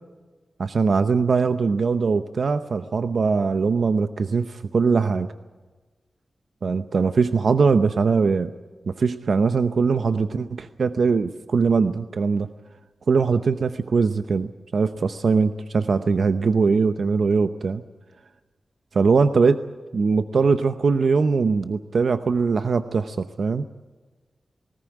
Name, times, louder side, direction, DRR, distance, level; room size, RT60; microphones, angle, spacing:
voice 1, 0.6-5.3 6.6-8.5 8.9-12.5 13.1-17.8 18.9-19.6 19.9-23.6, right 5 dB, 70° right, 10 dB, 0.8 m, -21 dB
19.5 x 18.0 x 9.1 m, 1.3 s
wide cardioid pair, 90°, 0 cm